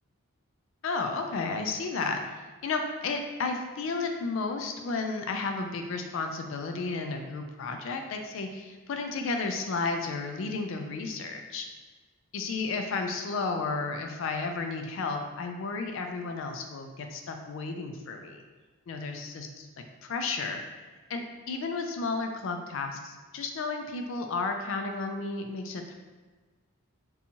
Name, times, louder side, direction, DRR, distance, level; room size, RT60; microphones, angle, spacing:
voice 1, 0.8-11.7 12.3-18.4 18.9-19.7 20.0-20.6 21.1-25.9, left 4 dB, 60° left, 5 dB, 0.3 m, -33 dB
2.6 x 2.3 x 2.8 m, 1.3 s
head